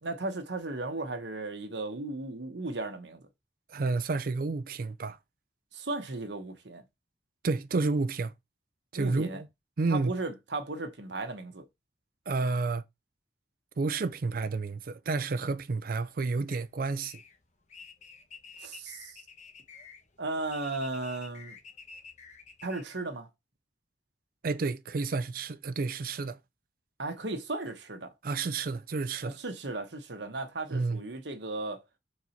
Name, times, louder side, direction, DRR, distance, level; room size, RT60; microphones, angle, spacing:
voice 1, 0.0-3.3 5.7-6.8 8.9-9.4 9.9-11.6 18.6-19.2 20.2-21.6 22.6-23.3 27.0-28.1 29.2-31.8, right 2 dB, 70° right, 1.2 m, -36 dB
voice 2, 3.7-5.2 7.4-8.3 8.9-9.5 9.8-10.1 12.3-12.8 13.8-17.2 24.4-26.4 28.2-29.3 30.7-31.0, right 3 dB, 50° right, 0.5 m, -30 dB
sound 1, 16.5-22.8, left 5 dB, 40° left, 1.1 m, -50 dB
4.7 x 4.0 x 5.8 m
head